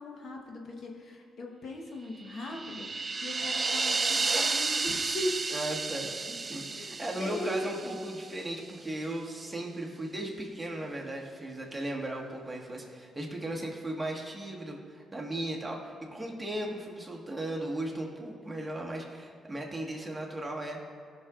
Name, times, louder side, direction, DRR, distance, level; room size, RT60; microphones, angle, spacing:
voice 1, 0.0-5.4 6.7-7.9, left 1 dB, 60° left, 1 dB, 1.1 m, -39 dB
sound 1, 2.3-8.5, right 4 dB, 35° right, 0.4 m, -32 dB
voice 2, 5.5-20.8, right 1 dB, 10° right, -2 dB, 1.5 m, -36 dB
17.0 x 6.1 x 2.5 m, 2.2 s
cardioid pair, 95°, 0 cm